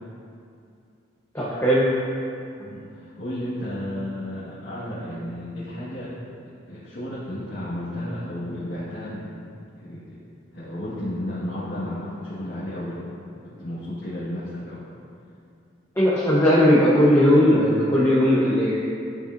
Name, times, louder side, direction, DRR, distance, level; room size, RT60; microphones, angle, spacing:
voice 1, 1.3-1.9 16.0-18.8, equal, 15° left, -8 dB, 0.9 m, -18 dB
voice 2, 2.6-6.1 6.7-9.3 9.8-10.1 10.5-13.0 13.3-14.8, left 1 dB, 60° left, -11 dB, 1.6 m, -33 dB
11.5 x 5.6 x 2.6 m, 2.5 s
head